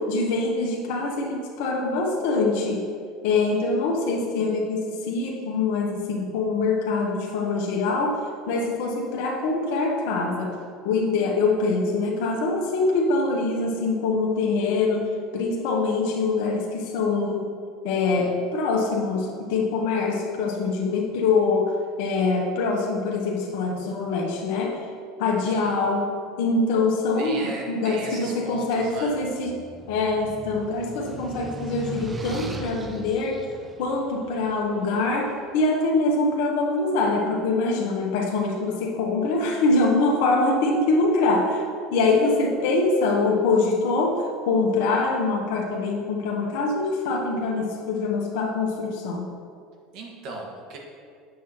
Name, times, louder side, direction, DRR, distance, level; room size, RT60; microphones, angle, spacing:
voice 1, 0.0-2.9 3.2-10.6 10.8-15.1 15.3-17.5 17.8-24.7 25.2-26.1 26.4-29.6 29.9-33.4 33.8-41.7 41.9-49.3, left 3 dB, 75° left, -1 dB, 1.1 m, -24 dB
voice 2, 25.4-25.7 27.2-29.1 49.9-50.8, right 2 dB, 60° right, 0 dB, 1.6 m, -37 dB
sound 1, 28.9-35.2, right 3 dB, 20° right, 0.7 m, -38 dB
8.1 x 7.6 x 2.9 m, 2.2 s
supercardioid pair, 100°, 0 cm